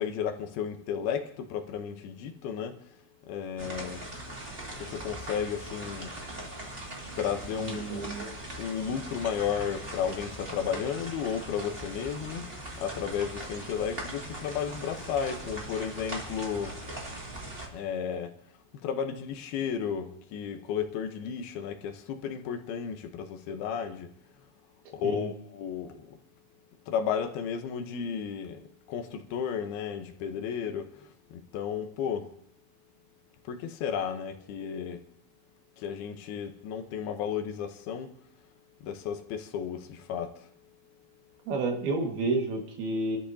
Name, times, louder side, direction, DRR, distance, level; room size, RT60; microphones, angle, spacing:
voice 1, 0.0-2.8 3.3-4.0 4.8-6.2 7.2-8.1 8.6-12.5 12.8-16.8 17.7-18.4 18.8-24.1 24.9-26.2 26.9-28.6 28.9-32.3 33.5-35.0 35.8-38.1 38.8-40.5, left 7 dB, 80° left, 3.0 m, -33 dB
sound 1, 3.6-17.7, right 1 dB, 20° right, 1.9 m, -40 dB
voice 2, 7.6-8.3 25.0-25.3 41.5-43.2, right 3 dB, 80° right, 3.8 m, -30 dB
28.5 x 13.0 x 2.8 m
omnidirectional pair, 4.4 m